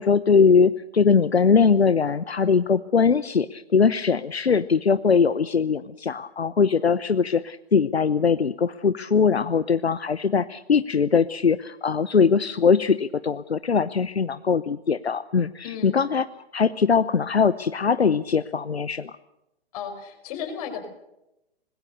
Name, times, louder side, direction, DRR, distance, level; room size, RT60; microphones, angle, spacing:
voice 1, 0.0-16.3 16.5-19.2, left 5 dB, 75° left, 15 dB, 0.8 m, -21 dB
voice 2, 19.7-20.9, left 7 dB, 35° left, 6 dB, 5.2 m, -34 dB
25.0 x 20.5 x 6.7 m, 0.89 s
figure-of-eight pair, 120°, 31 cm